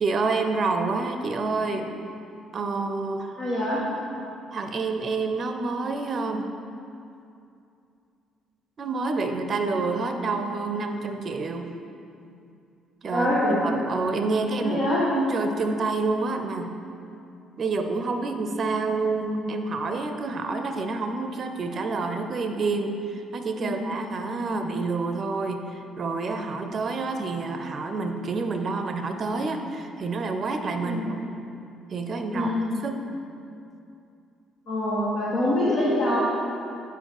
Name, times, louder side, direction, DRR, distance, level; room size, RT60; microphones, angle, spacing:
voice 1, 0.0-1.9 2.5-3.4 4.5-6.5 8.8-11.7 13.0-14.9 15.1-16.7 17.6-31.2 31.9-32.5 32.8-33.1, right 3 dB, 45° right, 6 dB, 0.6 m, -28 dB
voice 2, 3.4-3.8 10.1-10.2 13.1-13.6 14.6-15.0 23.6-23.8 24.4-24.6 30.8-31.1 32.3-32.6 34.7-36.2, left 1 dB, 55° left, -8 dB, 1.5 m, -25 dB
8.8 x 5.1 x 4.7 m, 2.6 s
figure-of-eight pair, 45°, 0 cm